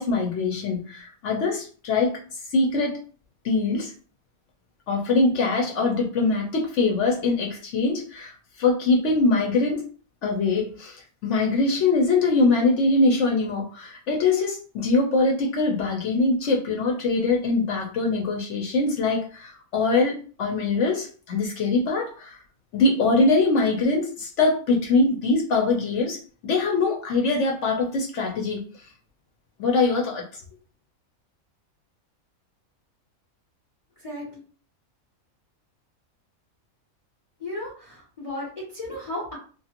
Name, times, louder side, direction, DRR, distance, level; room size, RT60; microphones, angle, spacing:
voice 1, 0.0-2.2 2.5-3.0 3.4-3.9 4.9-9.8 10.2-22.4 22.7-26.2 26.4-28.6 29.6-30.4, left 3 dB, 65° left, 0 dB, 0.9 m, -23 dB
voice 2, 34.0-34.4 37.4-39.4, left 1 dB, 35° left, -4 dB, 0.6 m, -34 dB
2.5 x 2.4 x 2.8 m, 0.40 s
omnidirectional pair, 1.5 m